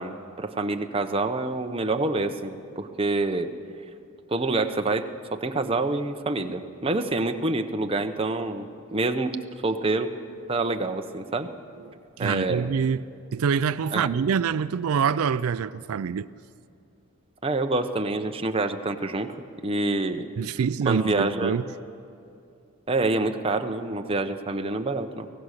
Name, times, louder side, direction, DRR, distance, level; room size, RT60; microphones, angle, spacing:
voice 1, 0.0-3.5 4.3-9.4 9.6-10.1 10.5-11.5 12.2-12.7 13.9-14.1 17.4-19.3 19.6-20.3 20.9-21.6 22.9-25.3, right 2 dB, 25° right, 0.8 m, -27 dB
voice 2, 12.2-13.1 13.3-16.3 20.4-21.6, right 6 dB, 90° right, 0.4 m, -25 dB
24.0 x 17.0 x 6.5 m
head